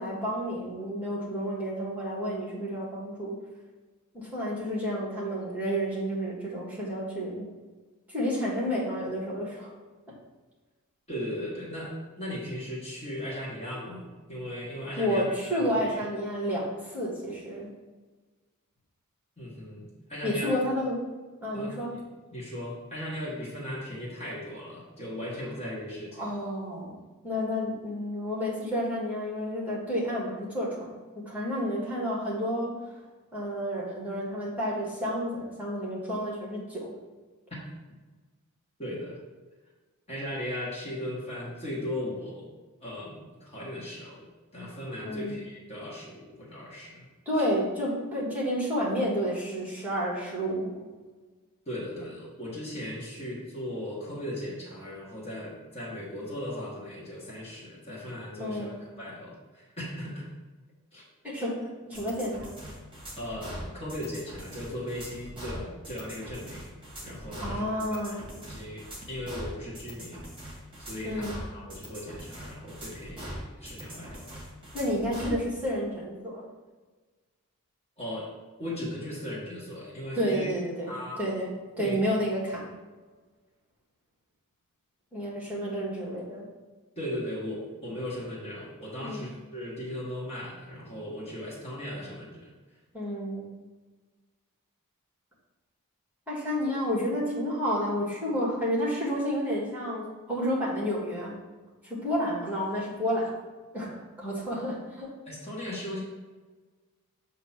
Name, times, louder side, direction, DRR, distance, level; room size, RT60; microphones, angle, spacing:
voice 1, 0.0-3.4 4.1-7.5 8.1-9.7 15.0-17.7 20.2-21.0 21.4-21.9 26.2-27.0 27.2-31.0 31.3-32.7 33.3-36.9 45.0-45.4 47.2-50.9 58.4-58.7 61.2-62.5 67.4-68.2 71.0-71.4 74.7-76.4 80.2-80.9 81.2-81.5 81.8-82.7 85.1-86.5 89.0-89.3 92.9-93.5 96.3-101.3 101.8-103.3 103.7-105.1, equal, 5° right, -6 dB, 1.6 m, -30 dB
voice 2, 11.1-16.0 19.4-20.5 21.5-21.7 22.3-26.2 37.5-37.6 38.8-39.2 40.1-42.4 42.8-44.2 44.5-47.1 51.7-60.3 60.9-61.0 63.2-66.7 67.0-74.3 78.0-78.3 78.6-80.5 80.9-81.2 81.8-82.0 87.0-92.5 105.3-106.0, left 1 dB, 30° left, -5 dB, 1.5 m, -37 dB
sound 1, 61.9-75.4, equal, 25° right, 1.7 m, -41 dB
7.3 x 2.9 x 5.7 m, 1.3 s
head